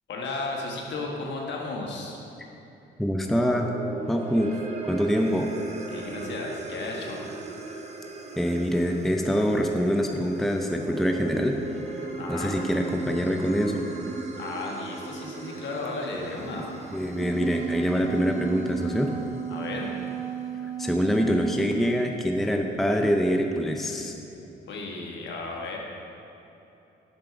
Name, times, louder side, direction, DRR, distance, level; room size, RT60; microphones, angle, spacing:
voice 1, 0.1-2.2 5.9-7.2 12.2-12.6 14.4-16.8 19.5-19.9 24.7-25.8, left 3 dB, 65° left, 0 dB, 1.4 m, -34 dB
voice 2, 3.0-3.7 4.1-4.5 4.9-5.5 8.4-11.6 12.3-13.8 16.9-19.1 20.8-24.1, equal, ahead, 3 dB, 0.5 m, -25 dB
sound 1, 3.2-19.6, right 3 dB, 35° right, 0.8 m, -38 dB
Wind instrument woodwind instrument, 16.9-22.1, right 9 dB, 80° right, 1.5 m, -34 dB
7.7 x 4.6 x 5.9 m, 3.0 s
cardioid pair, 90°, 20 cm